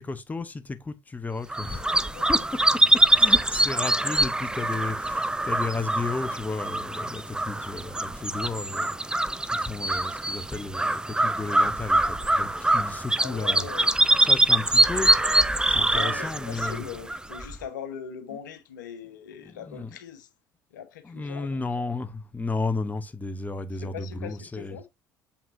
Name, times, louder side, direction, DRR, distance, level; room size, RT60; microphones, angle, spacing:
voice 1, 0.0-2.0 2.3-2.5 2.9-13.7 14.3-15.1 15.7-16.8 19.4-19.9 21.0-24.8, left 3 dB, 15° left, 0.9 m, -33 dB
sound 1, 1.5-17.6, right 1 dB, 10° right, 0.6 m, -24 dB
voice 2, 1.7-2.5 3.3-3.4 13.2-13.9 15.5-20.3 20.7-21.6 23.7-24.8, left 8 dB, 75° left, 1.1 m, -41 dB
7.2 x 5.8 x 2.7 m
figure-of-eight pair, 60°, 10 cm